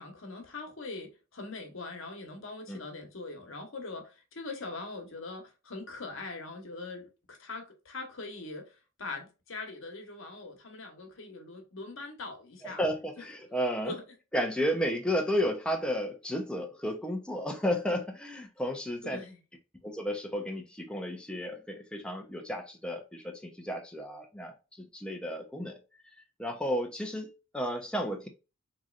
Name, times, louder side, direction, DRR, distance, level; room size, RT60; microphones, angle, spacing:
voice 1, 0.0-12.8 13.9-14.0 19.0-19.4, left 3 dB, 75° left, 1.2 m, -42 dB
voice 2, 12.6-13.9 14.3-19.2 19.8-24.5 24.9-25.8 26.4-28.3, equal, 5° left, 0.7 m, -32 dB
3.9 x 3.1 x 2.4 m
head